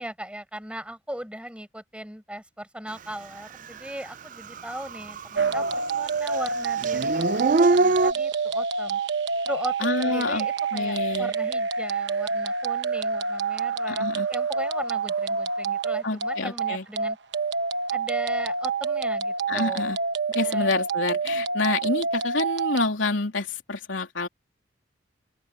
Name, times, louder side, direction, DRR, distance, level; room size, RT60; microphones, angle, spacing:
voice 1, 0.0-9.0 9.4-17.2 17.9-20.0 20.4-20.8, right 1 dB, 5° right, 5.1 m, -38 dB
Dog / Siren, 3.8-3.9 4.3-5.8 6.0-8.1, right 3 dB, 45° right, 0.5 m, -23 dB
sound 1, 5.3-22.9, right 4 dB, 65° right, 1.1 m, -27 dB
voice 2, 9.8-11.3 13.9-14.3 16.0-16.8 19.5-20.0 20.3-24.3, left 3 dB, 85° left, 3.4 m, -28 dB
open air
head